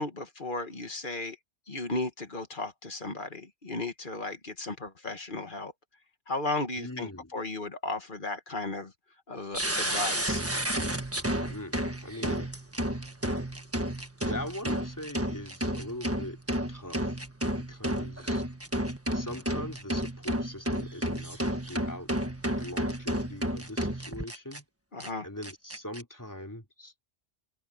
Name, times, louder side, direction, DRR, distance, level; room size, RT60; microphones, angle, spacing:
voice 1, 0.0-1.4 1.7-5.7 6.3-8.9 9.3-10.4 24.9-25.3, left 2 dB, 45° left, 1.8 m, -35 dB
voice 2, 6.8-7.3 11.5-12.6 14.3-16.4 16.7-17.2 17.6-18.4 19.1-22.1 22.6-24.6 25.2-26.9, left 1 dB, 15° left, 3.3 m, -41 dB
sound 1, 9.5-24.6 25.0-25.1 25.4-26.0, equal, 10° right, 1.4 m, -31 dB
omnidirectional pair, 1.2 m